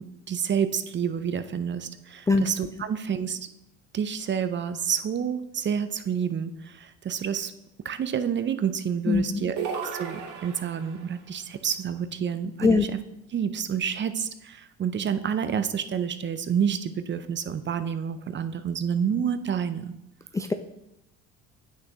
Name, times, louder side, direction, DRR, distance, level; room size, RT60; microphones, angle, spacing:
voice 1, 0.0-3.5 3.9-7.5 7.8-9.6 9.9-13.0 13.3-20.0, right 7 dB, 35° right, 11 dB, 0.6 m, -29 dB
voice 2, 9.1-9.4 12.6-12.9 20.3-20.5, left 4 dB, 10° left, 6 dB, 0.3 m, -21 dB
sound 1, 9.6-11.1, right 6 dB, 65° right, 1.5 m, -34 dB
8.3 x 6.5 x 3.0 m, 0.86 s
supercardioid pair, 70°, 33 cm